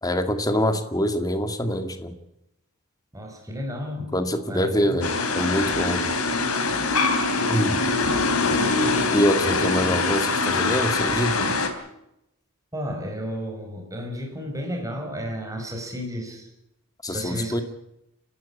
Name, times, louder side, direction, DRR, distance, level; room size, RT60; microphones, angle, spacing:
voice 1, 0.0-2.1 4.1-6.1 7.5-7.8 9.1-11.5 17.0-17.6, equal, 15° left, 7 dB, 2.2 m, -25 dB
voice 2, 3.1-4.1 4.5-5.0 9.4-10.0 12.7-16.5 17.1-17.6, equal, 15° right, 2 dB, 5.4 m, -32 dB
sound 1, 5.0-11.7, left 3 dB, 80° left, 3.4 m, -23 dB
30.0 x 13.0 x 8.5 m, 0.85 s
head